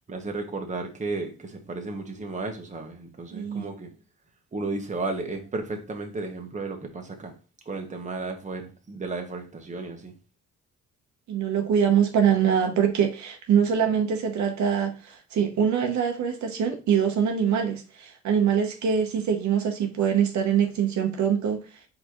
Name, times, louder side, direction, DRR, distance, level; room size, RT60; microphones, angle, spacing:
voice 1, 0.1-3.9 4.5-7.3 7.7-10.1, right 3 dB, 25° right, 1.2 m, -33 dB
voice 2, 3.3-3.6 11.3-21.6, right 8 dB, 70° right, 1.0 m, -24 dB
4.4 x 3.9 x 3.0 m
cardioid pair, 90°, 30 cm